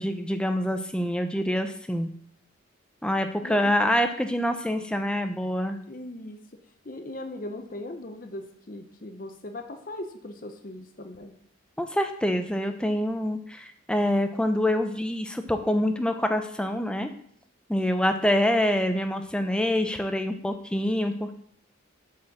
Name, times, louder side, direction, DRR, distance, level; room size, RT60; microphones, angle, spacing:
voice 1, 0.0-2.1 3.0-5.8 11.8-17.1 17.7-21.3, left 1 dB, 5° left, 6 dB, 0.5 m, -26 dB
voice 2, 5.9-6.4 6.8-11.3, left 1 dB, 40° left, 5 dB, 0.7 m, -39 dB
5.9 x 4.4 x 6.4 m, 0.68 s
head